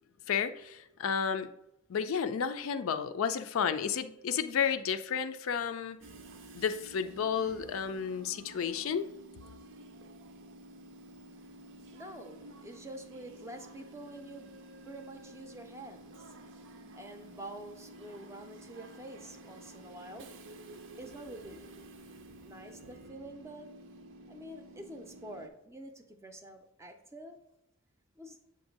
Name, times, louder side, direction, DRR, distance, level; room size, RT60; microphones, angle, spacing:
voice 1, 0.3-1.5 1.9-6.0 6.5-9.1, left 7 dB, 70° left, 10 dB, 0.4 m, -32 dB
Train / Subway metro underground, 6.0-25.5, right 1 dB, 60° right, 0.5 m, -51 dB
voice 2, 11.9-20.4 21.0-21.6 22.4-23.7 24.3-27.4 28.2-28.4, right 1 dB, 15° right, 5 dB, 0.5 m, -47 dB
7.7 x 2.6 x 5.1 m, 0.82 s
head